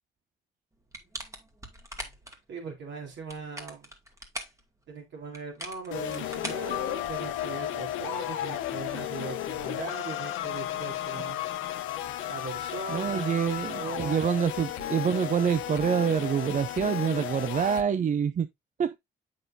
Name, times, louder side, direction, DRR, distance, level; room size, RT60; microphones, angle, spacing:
sound 1, 0.9-2.4 3.1-4.6 5.3-7.4, right 1 dB, 15° right, 1.8 m, -41 dB
voice 1, 2.5-3.9 4.9-11.4 12.3-13.5 13.8-14.4, right 4 dB, 65° right, 3.7 m, -39 dB
sound 2, 5.9-17.8, left 12 dB, 90° left, 0.9 m, -34 dB
Keyboard (musical), 6.7-9.2, left 19 dB, 55° left, 1.1 m, -42 dB
voice 2, 12.9-18.5 18.8-19.0, right 7 dB, 40° right, 0.5 m, -26 dB
7.9 x 6.3 x 2.6 m
cardioid pair, 90°, 20 cm